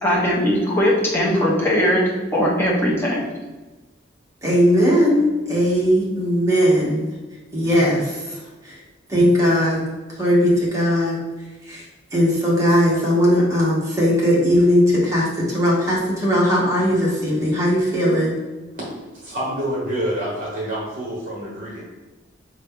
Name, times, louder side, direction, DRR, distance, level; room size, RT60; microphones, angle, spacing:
voice 1, 0.0-3.2, equal, 10° left, -5 dB, 1.0 m, -19 dB
voice 2, 4.4-7.1 7.5-8.8 9.1-9.8 10.1-11.2 11.6-18.4, equal, 15° right, -6 dB, 1.3 m, -19 dB
voice 3, 19.1-21.8, right 1 dB, 45° right, -5 dB, 1.0 m, -27 dB
4.5 x 3.1 x 3.5 m, 1.2 s
head